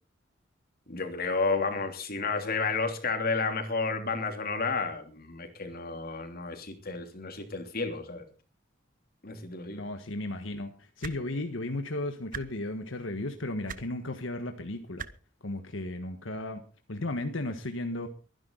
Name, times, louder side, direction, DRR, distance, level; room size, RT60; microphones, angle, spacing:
voice 1, 0.9-8.2 9.2-9.8, left 4 dB, 50° left, 5 dB, 3.0 m, -31 dB
voice 2, 9.7-15.1 15.4-16.6 16.9-18.1, left 2 dB, 85° left, 7 dB, 1.4 m, -35 dB
sound 1, 11.0-11.2 12.3-12.4 13.7-13.8 15.0-15.1 16.3-16.4, right 6 dB, 45° right, 1.0 m, -38 dB
23.0 x 10.5 x 3.9 m, 0.35 s
head